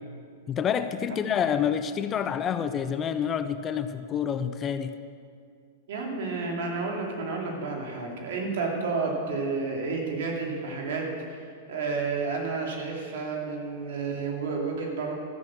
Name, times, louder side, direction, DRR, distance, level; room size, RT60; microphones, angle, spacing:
voice 1, 0.5-4.9, left 8 dB, 25° left, 0.5 m, -28 dB
voice 2, 5.9-15.1, right 4 dB, 70° right, 2.8 m, -31 dB
13.5 x 6.7 x 7.4 m
supercardioid pair, 140°, 0 cm